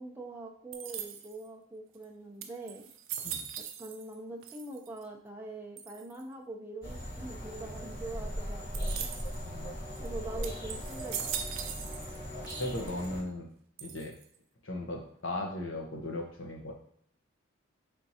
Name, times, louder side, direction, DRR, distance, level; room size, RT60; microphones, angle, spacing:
voice 1, 0.0-2.9 3.8-9.1 10.0-11.3, right 2 dB, 10° right, 0 dB, 0.5 m, -43 dB
sound 1, 0.7-1.5 2.0-2.1 2.4-4.2 4.4-5.0 5.8-6.2 8.7-9.4 10.0-10.1 10.4-12.2 12.4-13.1 13.8-14.4, right 9 dB, 75° right, 0.5 m, -40 dB
sound 2, 6.8-13.2, equal, 50° left, 1.7 m, -39 dB
voice 2, 12.6-13.5 13.8-14.1 14.6-16.7, left 1 dB, 70° left, 1 dB, 1.0 m, -37 dB
4.4 x 3.5 x 2.8 m, 0.65 s
head